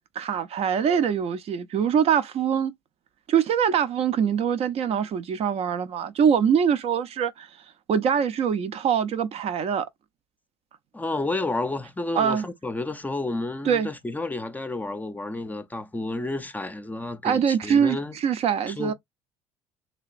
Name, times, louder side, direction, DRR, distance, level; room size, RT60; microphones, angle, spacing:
voice 1, 0.2-2.7 3.3-7.5 7.9-9.9 12.1-12.4 13.6-13.9 17.2-18.9, right 7 dB, 50° right, 0.5 m, -23 dB
voice 2, 10.9-18.1 18.7-18.9, left 2 dB, 10° left, 0.5 m, -31 dB
3.3 x 2.8 x 2.5 m
supercardioid pair, 80°, 13 cm